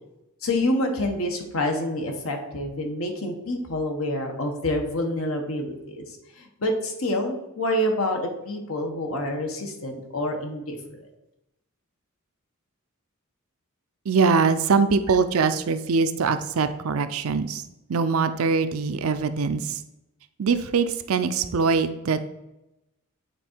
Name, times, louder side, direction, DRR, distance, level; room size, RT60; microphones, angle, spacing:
voice 1, 0.4-6.1 6.4-11.0, left 1 dB, 75° left, 3 dB, 1.1 m, -27 dB
voice 2, 14.1-17.6 17.9-19.8 20.4-22.3, right 5 dB, 80° right, 11 dB, 0.5 m, -23 dB
8.3 x 3.7 x 4.5 m, 0.93 s
head